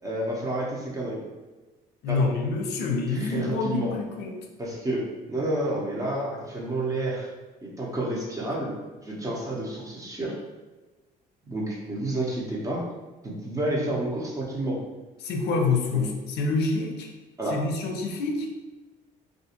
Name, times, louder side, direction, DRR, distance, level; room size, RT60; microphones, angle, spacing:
voice 1, 0.0-1.2 2.1-2.3 3.1-3.9 4.6-7.3 7.6-8.8 9.0-10.4 11.5-12.8 13.2-14.8 15.9-16.0 17.4-17.6, right 1 dB, 20° right, -3 dB, 0.7 m, -30 dB
voice 2, 2.0-4.4 15.2-17.1 17.5-18.5, left 3 dB, 75° left, 3 dB, 0.5 m, -27 dB
2.4 x 2.3 x 2.8 m, 1.2 s
cardioid pair, 110°, 17 cm